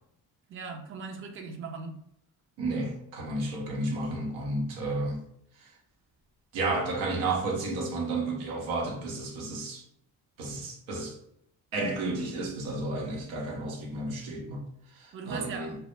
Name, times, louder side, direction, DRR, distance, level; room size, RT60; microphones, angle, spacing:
voice 1, 0.5-2.0 15.1-15.7, right 5 dB, 30° right, 0.5 m, -38 dB
voice 2, 2.6-5.2 5.6-5.7 6.5-9.8 10.4-11.2 11.7-14.6 15.0-15.7, right 2 dB, 85° right, 0.8 m, -32 dB
2.0 x 2.0 x 3.1 m
supercardioid pair, 55°, 47 cm